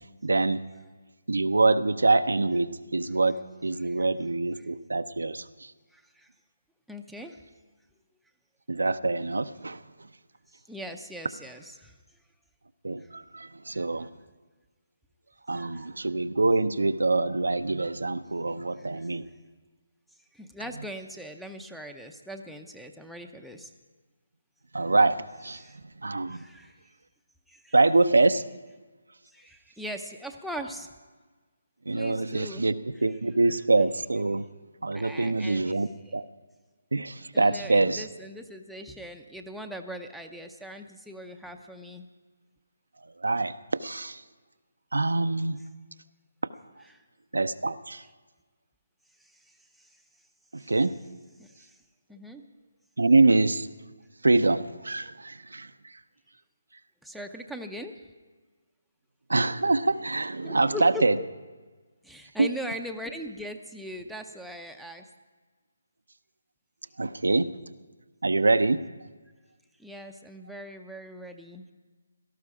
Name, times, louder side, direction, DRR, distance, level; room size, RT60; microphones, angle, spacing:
voice 1, 0.2-0.6 1.3-3.4 3.6-5.4 8.7-9.8 12.8-14.1 15.5-19.2 24.7-25.6 26.0-26.4 27.7-28.4 31.9-32.7 33.0-34.4 34.8-36.2 36.9-38.0 43.2-44.2 44.9-45.6 47.3-48.0 50.5-50.9 53.0-53.7 54.2-55.7 59.3-61.1 62.4-62.5 67.0-67.5 68.2-68.8, right 3 dB, 85° right, 10 dB, 0.6 m, -24 dB
voice 2, 5.9-6.3 6.9-7.4 10.7-11.9 13.7-13.8 15.5-15.9 18.8-19.1 20.3-23.7 25.5-25.8 26.3-26.8 27.5-27.8 29.3-30.9 31.9-32.7 32.9-33.2 34.9-35.8 36.0-36.2 37.3-42.1 46.8-47.0 49.3-49.5 49.8-49.9 50.6-50.7 51.4-51.8 52.1-52.4 57.0-58.0 60.4-61.3 62.0-65.1 69.8-71.7, equal, ahead, 6 dB, 0.7 m, -40 dB
17.5 x 13.5 x 4.9 m, 1.4 s
figure-of-eight pair, 155°, 0 cm